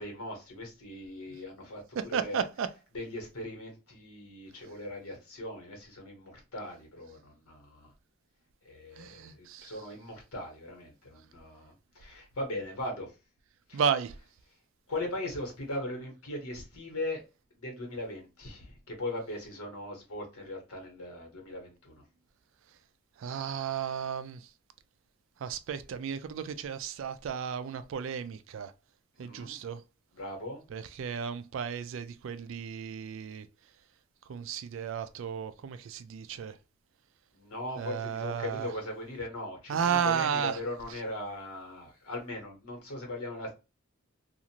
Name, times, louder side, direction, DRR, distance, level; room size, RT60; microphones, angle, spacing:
voice 1, 0.0-2.5 2.9-7.9 8.6-13.1 13.7-13.8 14.9-17.2 17.6-22.0 29.2-29.6 30.1-30.6 37.3-43.5, left 1 dB, 85° left, 1.2 m, -39 dB
voice 2, 2.0-2.7 9.0-9.8 13.7-14.1 23.2-24.5 25.4-28.7 29.2-29.8 30.7-33.5 34.3-36.6 37.8-38.7 39.7-40.6 40.9-41.0, right 7 dB, 60° right, 0.3 m, -33 dB
2.5 x 2.4 x 2.8 m
head